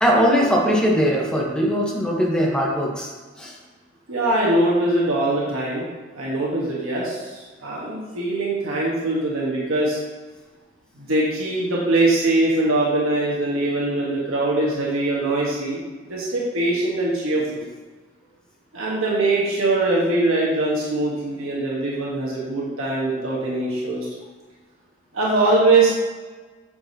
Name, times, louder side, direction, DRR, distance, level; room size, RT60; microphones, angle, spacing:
voice 1, 0.0-3.1 3.4-3.6, equal, 5° left, -3 dB, 1.0 m, -20 dB
voice 2, 4.1-5.9 6.1-10.0 10.9-15.8 16.1-17.6 18.7-24.1 25.1-25.9, right 2 dB, 75° right, -5 dB, 1.3 m, -22 dB
8.4 x 4.8 x 2.8 m, 1.4 s
head